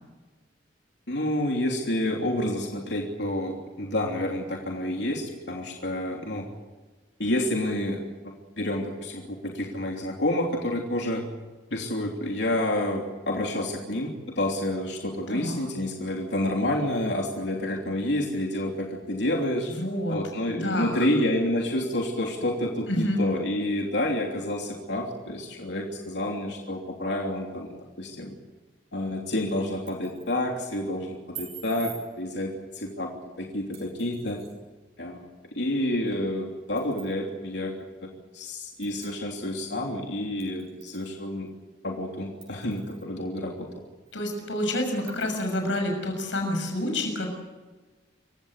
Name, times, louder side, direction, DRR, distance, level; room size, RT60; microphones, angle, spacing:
voice 1, 1.1-6.5 7.2-11.2 11.7-19.7 20.1-28.3 28.9-33.1 33.4-34.4 35.0-37.8 38.0-38.1 38.3-41.5 41.8-43.7, left 1 dB, 70° left, 1 dB, 3.1 m, -29 dB
voice 2, 19.7-20.2 20.5-21.1 22.9-23.2 44.1-47.3, left 1 dB, 90° left, 3 dB, 6.5 m, -28 dB
sound 1, 29.7-30.4 31.3-32.0 33.7-34.5 36.1-36.2 36.8-37.1 37.8-37.9 38.8-39.1 40.4-41.1 41.5-41.6 42.4-43.1 43.6-43.7 44.1-44.2 45.1-45.5, right 8 dB, 35° right, 6.7 m, -45 dB
28.0 x 16.0 x 8.2 m, 1.3 s
head